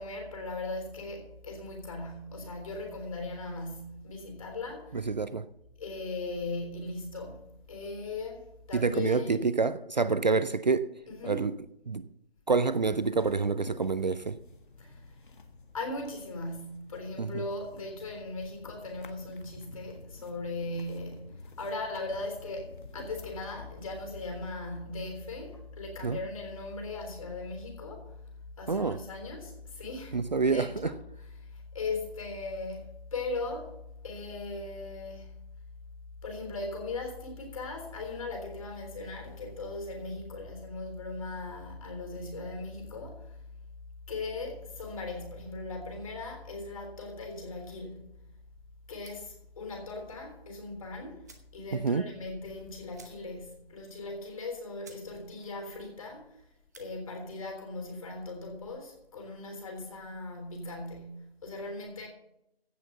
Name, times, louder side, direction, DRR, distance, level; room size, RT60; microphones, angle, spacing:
voice 1, 0.0-5.1 5.8-8.4 8.7-9.5 11.1-11.5 14.8-15.2 15.7-28.2 28.6-31.0 31.4-33.8 34.0-35.3 36.2-43.4 44.1-48.1 48.9-51.2 51.5-56.4 56.8-62.1, left 3 dB, 35° left, 3.6 m, -39 dB
voice 2, 4.9-5.5 8.7-10.9 11.2-11.5 11.9-12.1 12.5-14.4 17.2-17.4 26.0-26.2 28.7-29.0 30.1-30.9 51.7-52.0, right 4 dB, 45° right, 0.5 m, -27 dB
sound 1, 12.7-24.5, left 3 dB, 55° left, 1.6 m, -50 dB
sound 2, 49.0-49.4 50.7-50.8 51.2-51.6 51.9-52.0 52.3-52.4 52.9-53.5 53.9-54.0 54.4-54.5 54.8-55.1 55.4-55.8 56.5-56.9, right 4 dB, 15° right, 0.8 m, -55 dB
16.0 x 6.0 x 6.7 m
figure-of-eight pair, 160°, 31 cm